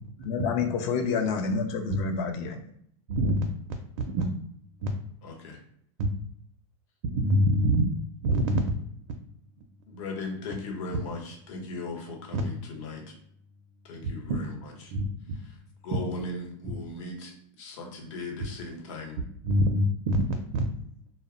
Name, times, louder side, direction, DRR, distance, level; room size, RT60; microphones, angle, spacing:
voice 1, 0.2-2.6, left 5 dB, 50° left, 5 dB, 0.4 m, -28 dB
voice 2, 3.1-3.4 4.1-4.3 4.8-4.9 7.1-7.9 8.2-8.6 12.3-12.4 14.3-14.4 14.9-15.4 19.4-20.2 20.5-20.6, equal, 65° right, 4 dB, 0.4 m, -24 dB
voice 3, 5.2-5.6 9.9-13.1 13.8-14.9 15.8-19.2, left 2 dB, 65° left, 1 dB, 0.9 m, -38 dB
2.0 x 2.0 x 3.6 m, 0.67 s
supercardioid pair, 150°, 17 cm